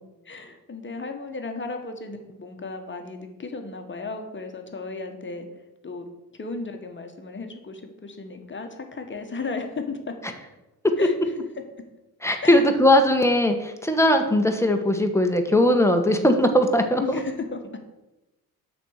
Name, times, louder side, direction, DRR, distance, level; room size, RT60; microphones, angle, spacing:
voice 1, 0.2-5.5 5.8-6.1 6.3-10.1 11.0-11.1 12.4-12.6 17.0-17.8, left 4 dB, 25° left, 5 dB, 1.4 m, -34 dB
voice 2, 12.2-17.2, left 1 dB, 5° left, 5 dB, 1.2 m, -19 dB
6.5 x 4.4 x 6.6 m, 1.0 s
hypercardioid pair, 60°, 44 cm